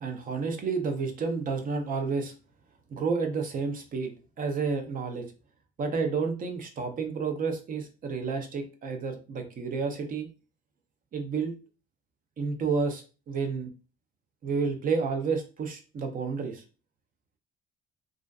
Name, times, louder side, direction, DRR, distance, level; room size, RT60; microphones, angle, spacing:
voice 1, 0.0-2.3 2.9-4.1 4.4-5.3 5.8-10.3 11.1-11.5 12.4-13.7 14.4-16.6, right 5 dB, 40° right, 5 dB, 0.5 m, -30 dB
2.4 x 2.3 x 2.3 m, 0.33 s
cardioid pair, 120°, 21 cm